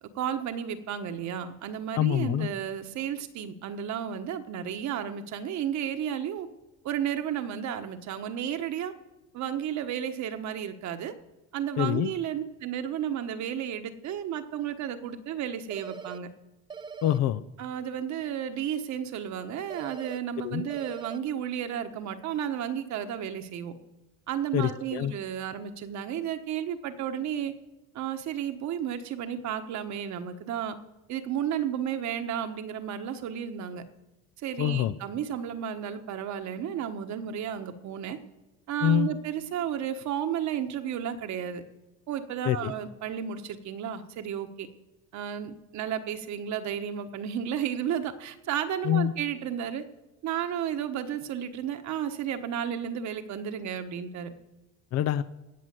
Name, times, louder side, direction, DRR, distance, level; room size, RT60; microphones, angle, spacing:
voice 1, 0.0-6.5 6.8-8.9 9.3-11.1 11.5-16.3 17.6-23.8 24.3-27.5 27.9-30.8 31.1-33.8 34.4-38.2 38.7-41.6 42.1-44.7 45.1-49.8 50.2-54.3, right 9 dB, 60° right, 8 dB, 1.3 m, -33 dB
voice 2, 2.0-2.5 11.8-12.1 17.0-17.4 20.4-20.6 24.5-25.1 34.6-34.9 38.8-39.1 42.5-42.7 48.8-49.1 54.9-55.2, left 11 dB, 55° left, 14 dB, 0.5 m, -25 dB
sound 1, 15.7-16.2 16.7-17.2 19.7-20.2 20.7-21.2, right 6 dB, 15° right, 0.4 m, -41 dB
17.5 x 6.2 x 7.7 m, 1.1 s
supercardioid pair, 100°, 32 cm